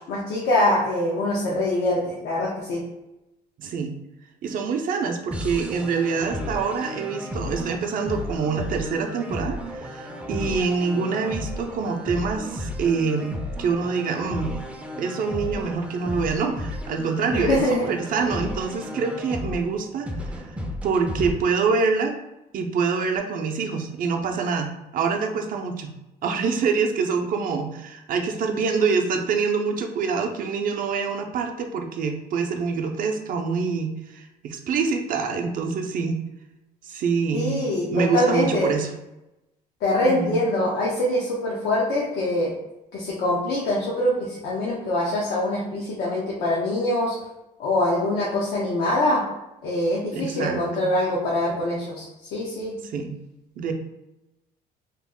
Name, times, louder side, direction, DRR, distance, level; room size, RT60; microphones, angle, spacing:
voice 1, 0.1-2.8 17.3-17.9 37.3-38.7 39.8-42.5 42.9-47.1 47.6-49.3 49.6-52.0 52.3-52.8, left 1 dB, 75° left, -5 dB, 0.8 m, -24 dB
voice 2, 3.6-4.0 4.4-14.6 15.0-20.6 20.8-22.2 22.5-25.9 26.2-36.2 36.8-38.9 40.0-40.4 50.1-50.9 52.8-53.2 53.6-53.7, right 5 dB, 55° right, 4 dB, 0.6 m, -26 dB
sound 1, 5.3-21.3, left 1 dB, 5° right, 0.5 m, -33 dB
2.9 x 2.0 x 3.6 m, 0.95 s
cardioid pair, 110°, 17 cm